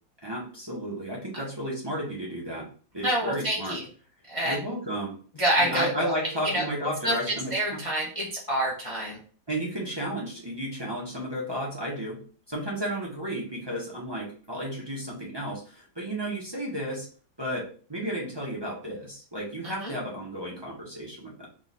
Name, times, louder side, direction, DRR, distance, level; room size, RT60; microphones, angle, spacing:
voice 1, 0.2-2.7 2.9-3.8 4.4-5.1 5.6-7.8 9.5-12.2 12.5-17.1 17.4-21.5, equal, 20° right, -5 dB, 0.7 m, -33 dB
voice 2, 3.0-3.8 4.3-4.6 5.4-6.1 6.5-6.6 7.0-9.2 19.6-19.9, right 1 dB, 55° left, -5 dB, 0.3 m, -27 dB
3.8 x 2.4 x 4.1 m, 0.43 s
omnidirectional pair, 2.0 m